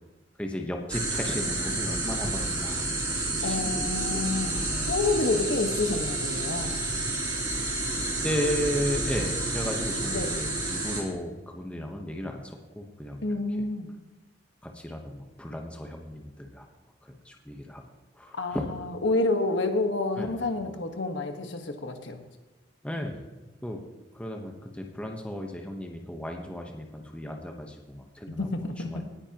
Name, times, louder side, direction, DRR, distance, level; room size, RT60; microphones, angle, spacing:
voice 1, 0.4-4.3 4.7-5.0 7.6-7.7 8.2-13.3 14.7-16.7 17.2-17.8 18.2-18.7 20.2-20.4 22.8-23.8 24.1-28.5 28.8-29.0, equal, 5° left, 2 dB, 1.0 m, -35 dB
sound 1, 0.9-11.0, right 2 dB, 20° right, 3.1 m, -30 dB
voice 2, 3.4-6.8 10.1-10.4 13.2-13.9 18.3-22.2 28.3-29.0, left 2 dB, 75° left, 5 dB, 1.4 m, -29 dB
18.0 x 9.9 x 3.0 m, 1.2 s
head